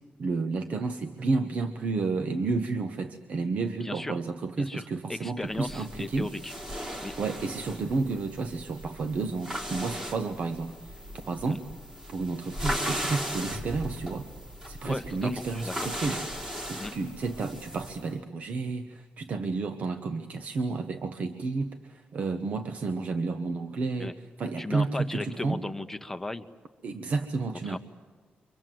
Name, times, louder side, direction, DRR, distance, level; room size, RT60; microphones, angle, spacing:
voice 1, 0.2-6.3 7.2-10.7 11.3-11.6 12.1-14.3 14.7-16.2 16.7-24.1 24.4-25.6 26.8-27.8, right 3 dB, 45° right, 8 dB, 1.1 m, -31 dB
voice 2, 3.8-4.2 4.6-6.5 7.0-7.1 11.5-11.6 14.8-15.9 16.8-16.9 24.0-24.1 24.6-26.5 27.6-27.8, left 2 dB, 10° left, 8 dB, 0.8 m, -36 dB
sound 1, 5.5-18.1, equal, 20° right, 3.2 m, -37 dB
30.0 x 25.0 x 7.7 m, 1.5 s
wide cardioid pair, 170°, 3 cm